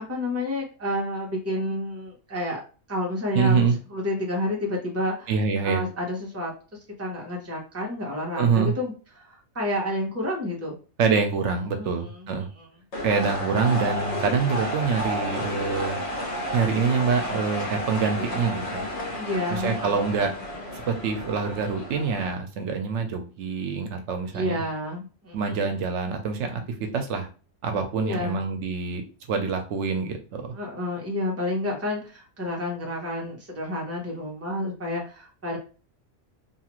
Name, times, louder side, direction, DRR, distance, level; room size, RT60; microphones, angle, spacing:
voice 1, 0.0-2.6 2.9-5.3 5.6-6.5 7.0-10.7 11.8-12.7 17.3-17.4 18.3-18.4 19.1-20.1 24.3-25.7 28.0-28.4 30.5-35.6, left 1 dB, 15° right, -2 dB, 0.8 m, -30 dB
voice 2, 3.3-3.8 5.3-5.8 8.4-8.7 11.0-12.5 13.0-16.0 16.5-18.8 19.5-20.3 20.8-24.6 25.3-26.6 26.9-27.3 27.6-29.0 29.3-30.5, right 5 dB, 80° right, 5 dB, 0.9 m, -25 dB
sound 1, 12.9-22.3, equal, 70° left, 1.3 m, -31 dB
2.8 x 2.4 x 2.9 m, 0.35 s
omnidirectional pair, 1.2 m